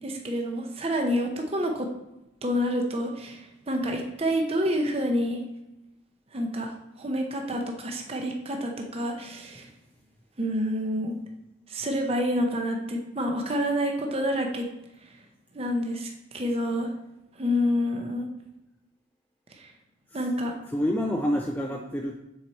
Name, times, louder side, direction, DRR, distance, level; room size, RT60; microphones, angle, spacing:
voice 1, 0.0-1.9 2.4-5.4 6.3-9.7 10.4-11.1 11.7-14.6 15.0-15.2 15.5-16.9 17.3-18.3 19.5-19.7 20.1-20.6, equal, 30° right, 2 dB, 0.7 m, -28 dB
voice 2, 20.7-22.2, equal, 10° left, 1 dB, 0.4 m, -28 dB
7.3 x 4.6 x 4.1 m, 0.92 s
head